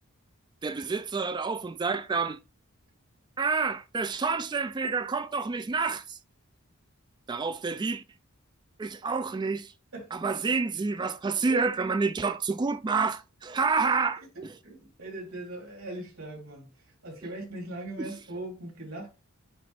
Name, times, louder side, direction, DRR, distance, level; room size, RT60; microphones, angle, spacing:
voice 1, 0.6-2.4 3.4-6.2 7.3-8.0 8.8-9.7 10.1-14.5 18.0-18.1, right 4 dB, 20° right, 0.3 m, -28 dB
voice 2, 11.3-11.7 14.2-19.1, right 1 dB, 75° right, 3.5 m, -40 dB
9.1 x 3.3 x 3.3 m
head